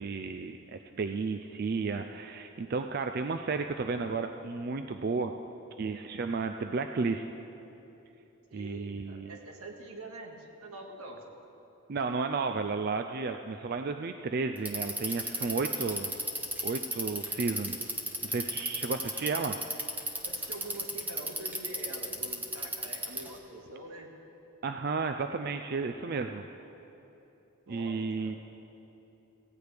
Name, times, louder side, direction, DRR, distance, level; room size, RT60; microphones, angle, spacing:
voice 1, 0.0-5.3 5.8-7.3 8.5-9.4 11.9-16.1 16.6-17.8 18.2-19.6 24.6-26.4 27.7-28.4, right 4 dB, 45° right, 7 dB, 0.4 m, -33 dB
voice 2, 8.5-11.2 20.2-24.1 27.7-28.3, right 2 dB, 85° right, 1 dB, 1.8 m, -45 dB
Bicycle, 14.6-23.4, right 1 dB, 10° right, 0.8 m, -34 dB
17.5 x 16.0 x 3.4 m, 3.0 s
head